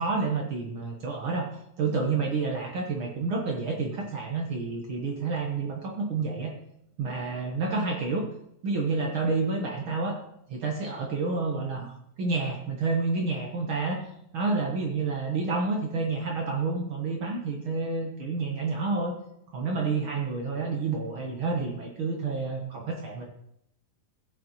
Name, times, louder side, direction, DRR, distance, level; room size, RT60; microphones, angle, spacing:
voice 1, 0.0-1.5 1.8-6.5 7.0-8.3 8.6-10.2 10.5-11.9 12.2-14.0 14.3-19.2 19.5-23.2, right 4 dB, 75° right, 0 dB, 1.2 m, -29 dB
15.5 x 6.8 x 3.0 m, 0.74 s
omnidirectional pair, 3.9 m